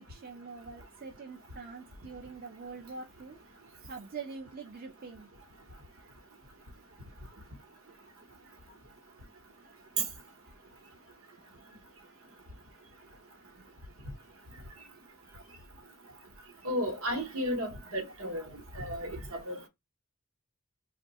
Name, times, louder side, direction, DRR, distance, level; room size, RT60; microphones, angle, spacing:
voice 1, 0.0-3.4 3.9-5.3 12.4-12.8 13.3-13.7 14.8-15.0, right 4 dB, 45° right, 0.4 m, -45 dB
voice 2, 16.6-18.5 18.7-19.7, equal, 75° right, 0.9 m, -34 dB
2.6 x 2.1 x 3.9 m
head